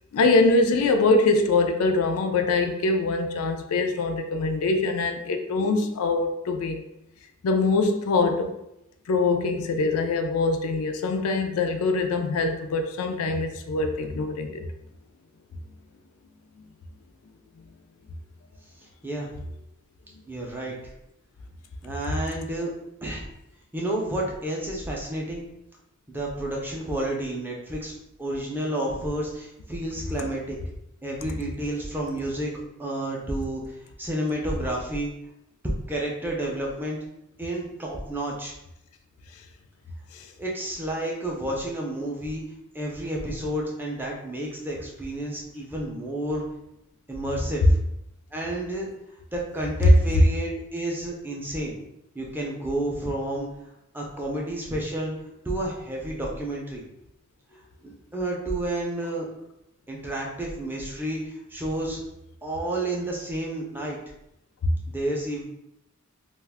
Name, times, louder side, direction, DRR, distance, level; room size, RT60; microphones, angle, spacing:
voice 1, 0.1-6.8 7.4-8.5 9.1-14.6 40.1-40.3 64.6-64.7, left 3 dB, 80° left, 6 dB, 0.4 m, -23 dB
voice 2, 20.3-20.7 21.8-22.7 23.0-23.3 23.7-25.5 26.1-27.9 28.2-30.6 31.0-32.5 32.8-33.6 34.0-35.1 35.9-37.0 37.4-38.5 40.4-42.4 42.7-46.4 47.1-47.8 48.3-48.9 49.3-51.7 52.1-53.5 53.9-55.1 55.4-56.8 57.8-59.3 59.9-62.0 62.4-64.0 64.9-65.4, right 1 dB, 10° right, -3 dB, 0.4 m, -30 dB
2.4 x 2.2 x 3.4 m, 0.84 s
head